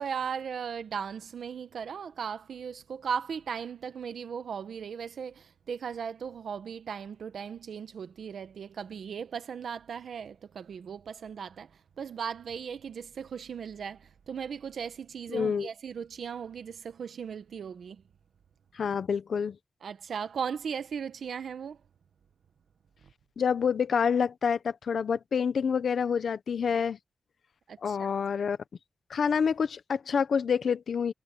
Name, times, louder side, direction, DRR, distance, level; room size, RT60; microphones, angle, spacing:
voice 1, 0.0-11.7 12.0-18.0 19.8-21.8 27.7-28.1, right 7 dB, 75° right, 1.2 m, -37 dB
voice 2, 15.3-15.7 18.7-19.6 23.4-27.0 27.8-28.6 29.1-31.1, left 6 dB, 65° left, 1.0 m, -27 dB
wide cardioid pair, 165°, 0 cm